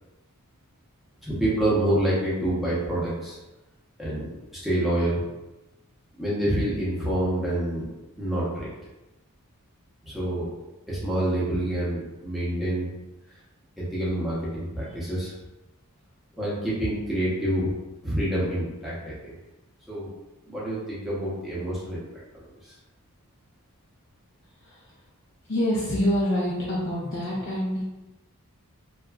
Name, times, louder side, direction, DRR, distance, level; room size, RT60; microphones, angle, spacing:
voice 1, 1.2-3.4 4.0-5.2 6.2-7.9 8.2-8.7 10.1-10.5 10.9-12.9 13.8-15.3 16.3-17.7 18.0-19.3 19.9-20.1 20.5-22.1 22.3-22.7, right 1 dB, ahead, -9 dB, 0.7 m, -27 dB
voice 2, 24.6-24.9 25.5-27.8, equal, 55° left, -7 dB, 0.5 m, -26 dB
2.8 x 2.4 x 2.3 m, 1.0 s
head